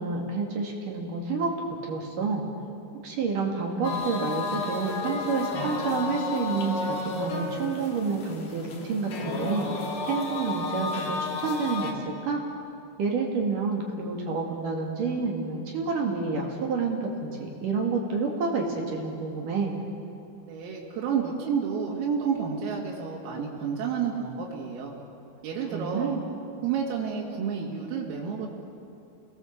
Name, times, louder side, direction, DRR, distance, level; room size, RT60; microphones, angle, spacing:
voice 1, 0.0-1.5 1.8-2.5 3.0-9.8 10.1-12.4 13.0-19.8 25.7-26.2, right 4 dB, 50° right, 0 dB, 3.1 m, -29 dB
sound 1, 3.8-11.9, left 3 dB, 50° left, 3.5 m, -32 dB
voice 2, 20.4-24.9 25.4-26.1 26.6-28.5, right 6 dB, 80° right, -3 dB, 5.1 m, -30 dB
29.0 x 20.5 x 7.4 m, 2.6 s
omnidirectional pair, 5.9 m